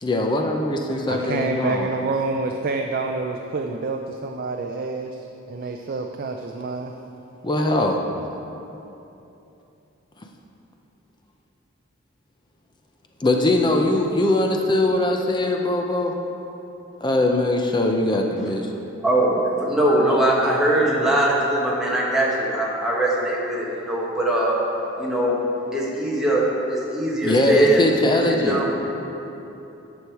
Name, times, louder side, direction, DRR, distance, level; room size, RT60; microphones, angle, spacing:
voice 1, 0.0-1.9 7.4-8.0 13.2-16.1 17.0-18.7 27.2-28.6, left 1 dB, 20° left, 2 dB, 0.5 m, -21 dB
voice 2, 1.1-6.9, right 3 dB, 45° right, 3 dB, 0.4 m, -28 dB
voice 3, 19.0-24.6 25.0-25.4 25.7-27.8 28.3-28.9, right 1 dB, 5° right, -5 dB, 1.4 m, -21 dB
9.9 x 6.3 x 4.6 m, 2.9 s
head